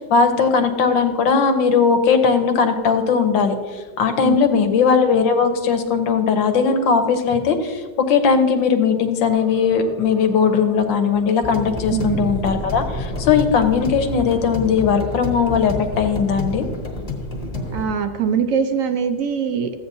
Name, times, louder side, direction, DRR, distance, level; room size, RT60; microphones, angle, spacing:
voice 1, 0.0-16.7, left 5 dB, 90° left, 6 dB, 1.6 m, -18 dB
voice 2, 4.2-4.7 11.9-12.2 17.7-19.7, right 7 dB, 65° right, 7 dB, 0.8 m, -22 dB
sound 1, 9.2-14.3, left 3 dB, 45° left, 1.1 m, -38 dB
sound 2, 11.4-17.8, left 2 dB, 25° left, 1.0 m, -28 dB
14.5 x 8.7 x 2.7 m, 1.5 s
omnidirectional pair, 2.0 m